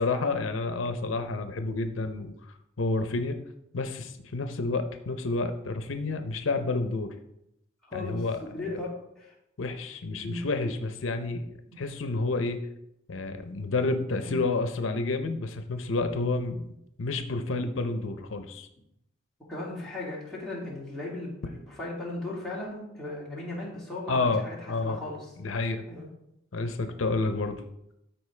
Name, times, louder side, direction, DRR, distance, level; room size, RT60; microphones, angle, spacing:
voice 1, 0.0-3.4 3.7-7.1 7.9-8.4 9.6-11.5 11.8-12.6 13.1-16.7 17.0-18.7 24.1-25.0 25.4-25.8 26.5-27.6, left 3 dB, 85° left, 8 dB, 0.7 m, -29 dB
voice 2, 7.8-9.3 10.2-10.4 11.7-11.8 14.2-14.4 19.5-25.3 25.9-26.1, left 2 dB, 5° left, -7 dB, 2.5 m, -37 dB
13.0 x 4.4 x 3.3 m, 0.81 s
head